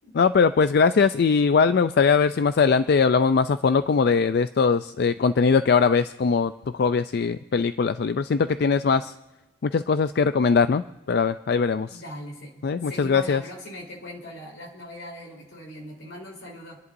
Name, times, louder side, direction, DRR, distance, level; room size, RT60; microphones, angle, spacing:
voice 1, 0.1-9.1 9.6-12.0 12.6-13.4, left 5 dB, 55° left, 11 dB, 0.4 m, -21 dB
voice 2, 11.9-12.5 12.8-16.8, left 1 dB, 75° left, 0 dB, 3.7 m, -40 dB
29.5 x 11.0 x 2.6 m, 1.1 s
head